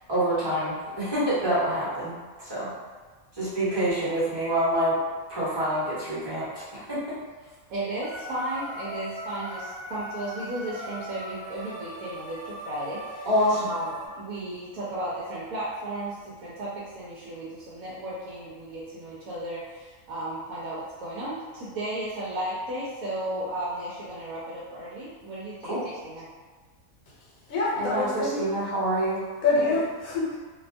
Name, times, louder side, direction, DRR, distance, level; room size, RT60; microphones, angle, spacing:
voice 1, 0.1-2.1 2.4-2.7 3.4-5.0 5.3-7.2 13.2-13.7 25.6-25.8 27.8-29.2, right 1 dB, 20° right, -11 dB, 0.9 m, -26 dB
voice 2, 7.7-25.7 26.0-26.3, right 1 dB, 80° right, -8 dB, 1.1 m, -34 dB
sound 1, 8.0-14.1, equal, 60° right, 0.6 m, -40 dB
voice 3, 27.5-28.5 29.4-30.4, left 3 dB, 70° left, -4 dB, 1.1 m, -25 dB
2.7 x 2.2 x 2.5 m, 1.4 s
omnidirectional pair, 1.5 m